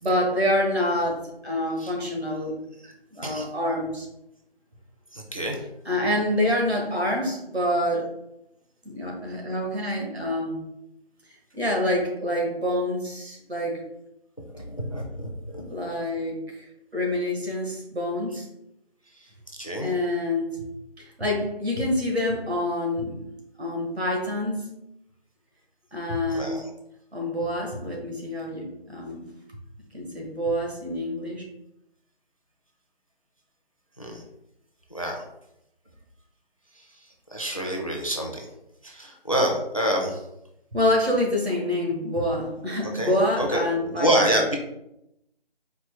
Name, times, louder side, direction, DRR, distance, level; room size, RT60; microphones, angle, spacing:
voice 1, 0.0-2.6 3.1-4.1 5.8-8.0 8.8-10.6 11.5-13.8 15.7-16.7 16.9-18.5 19.8-20.6 21.0-23.2 23.6-24.8 25.9-26.7 27.1-29.3 29.9-31.4 40.7-44.4, left 1 dB, 80° right, 0 dB, 1.4 m, -27 dB
voice 2, 5.1-5.6 14.5-15.6 19.5-19.9 26.3-26.6 34.0-34.2 34.9-35.2 37.3-38.5 38.8-40.2 42.9-43.6 44.0-44.6, equal, 35° left, 1 dB, 0.4 m, -27 dB
4.3 x 2.2 x 3.4 m, 0.85 s
figure-of-eight pair, 165°, 31 cm